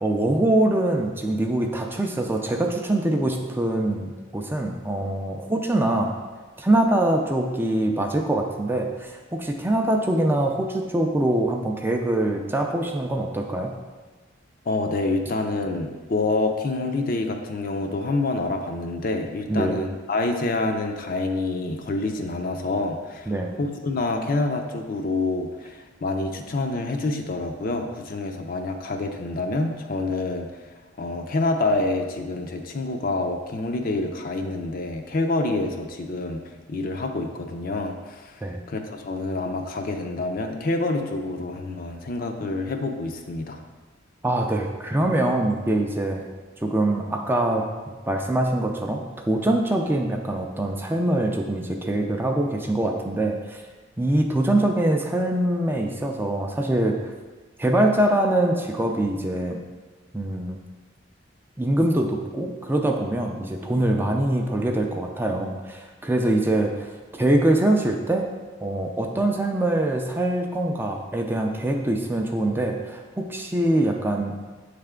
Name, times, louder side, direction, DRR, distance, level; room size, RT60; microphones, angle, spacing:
voice 1, 0.0-6.2 6.6-13.8 19.5-19.8 23.3-23.5 38.4-38.6 44.2-46.3 46.6-47.6 48.1-53.6 54.0-57.1 57.6-59.6 60.1-60.6 61.6-68.3 68.6-74.4, right 1 dB, 10° right, 2 dB, 0.4 m, -23 dB
voice 2, 14.7-23.3 23.6-30.6 31.0-43.6, left 2 dB, 50° left, 4 dB, 0.5 m, -27 dB
7.9 x 3.3 x 3.7 m, 1.3 s
head